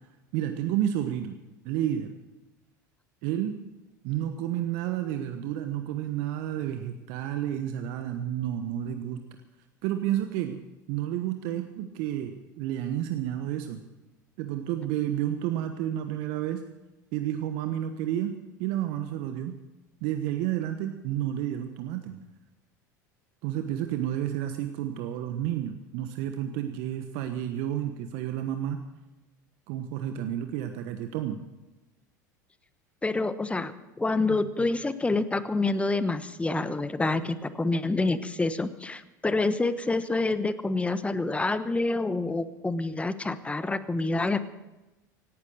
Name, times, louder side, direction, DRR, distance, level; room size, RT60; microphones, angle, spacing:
voice 1, 0.3-1.3 1.6-2.1 3.2-3.6 4.0-9.2 9.8-10.6 10.9-12.3 12.6-13.8 14.4-16.6 17.1-19.5 20.0-22.2 23.4-28.8 29.7-31.4 34.6-34.7, right 11 dB, 60° right, 7 dB, 1.2 m, -30 dB
voice 2, 33.0-33.7 34.0-44.4, left 3 dB, 10° left, 13 dB, 1.1 m, -27 dB
17.0 x 12.0 x 6.5 m, 1.0 s
hypercardioid pair, 80°, 10 cm